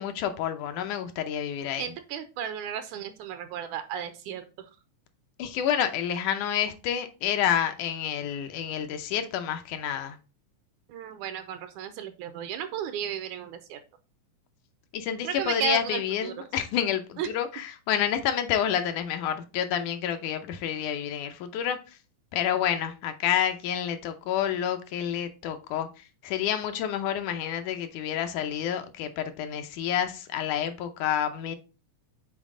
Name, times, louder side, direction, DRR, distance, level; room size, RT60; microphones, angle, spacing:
voice 1, 0.0-1.9 5.4-10.2 14.9-21.8 22.3-31.6, left 9 dB, 80° left, 2.1 m, -29 dB
voice 2, 1.8-4.5 10.9-13.8 15.2-16.3 17.2-17.3, right 10 dB, 80° right, 1.9 m, -34 dB
7.3 x 4.0 x 3.7 m
omnidirectional pair, 3.6 m